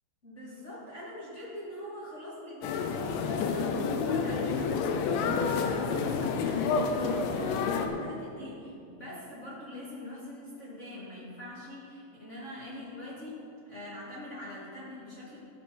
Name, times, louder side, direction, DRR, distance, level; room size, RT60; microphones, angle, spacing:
voice 1, 0.2-13.4 13.6-15.4, left 1 dB, 45° left, -9 dB, 0.8 m, -42 dB
sound 1, 2.6-7.9, left 5 dB, 85° left, 3.0 m, -29 dB
15.5 x 6.4 x 5.4 m, 2.5 s
omnidirectional pair, 5.3 m